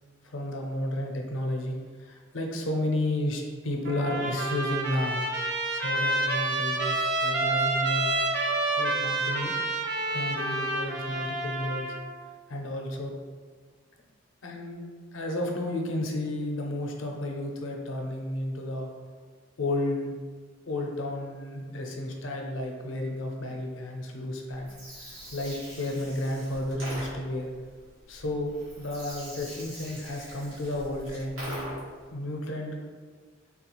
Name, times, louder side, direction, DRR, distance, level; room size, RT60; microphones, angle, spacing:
voice 1, 0.3-1.8 2.0-5.2 5.8-8.1 8.8-9.5 10.1-11.9 12.5-13.1 14.4-14.8 15.1-18.9 19.6-20.1 20.7-24.7 25.3-27.5 28.1-28.5 28.8-31.7 32.1-32.8, left 1 dB, 75° left, 1 dB, 0.5 m, -32 dB
Trumpet, 3.9-12.0, right 2 dB, 55° right, 0.4 m, -28 dB
Gurgling, 24.5-32.0, equal, 85° right, 1.2 m, -43 dB
3.5 x 2.3 x 3.0 m, 1.5 s
head